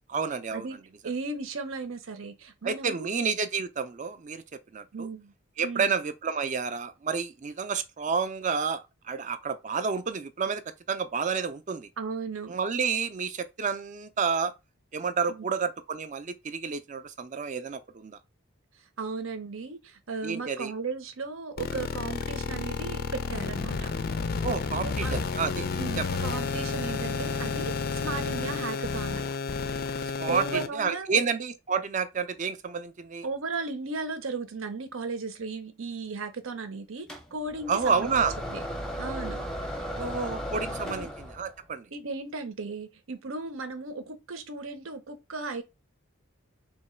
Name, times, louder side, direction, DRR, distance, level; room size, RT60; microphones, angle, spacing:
voice 1, 0.1-0.7 2.6-5.1 5.6-8.8 9.1-10.6 10.9-11.9 12.5-14.5 14.9-18.2 20.2-20.7 24.4-25.7 26.0-26.1 30.2-33.3 37.7-38.3 40.0-41.9, right 5 dB, 35° right, 0.5 m, -30 dB
voice 2, 1.0-3.1 4.9-5.3 5.6-5.9 12.0-12.6 15.3-15.5 19.0-24.0 24.8-25.2 25.8-29.2 30.3-31.3 33.2-38.1 38.5-38.6 39.0-39.4 40.9-41.1 41.9-45.6, right 4 dB, 80° right, 0.8 m, -36 dB
sound 1, 21.6-30.7, left 5 dB, 50° left, 0.4 m, -31 dB
sound 2, 37.1-41.6, equal, 5° left, 0.6 m, -36 dB
3.1 x 2.9 x 4.3 m
head